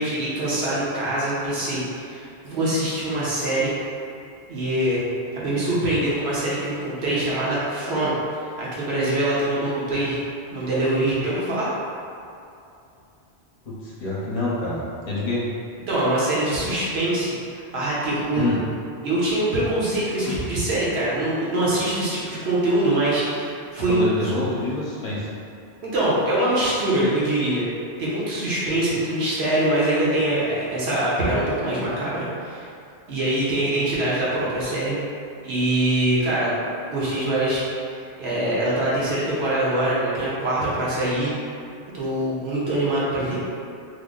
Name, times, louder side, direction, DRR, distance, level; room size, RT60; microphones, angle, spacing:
voice 1, 0.0-3.8 4.5-5.0 5.3-8.1 8.4-10.2 10.5-11.7 15.9-18.4 19.0-24.0 25.8-27.6 28.0-32.7 33.1-35.0 35.4-36.5 36.9-37.6 37.9-41.3 41.9-43.4, right 1 dB, 75° right, -8 dB, 1.1 m, -23 dB
voice 2, 13.6-15.4 18.4-18.6 20.2-20.3 23.9-25.3, left 2 dB, 40° left, -7 dB, 0.8 m, -26 dB
3.5 x 2.1 x 3.7 m, 2.6 s
omnidirectional pair, 1.1 m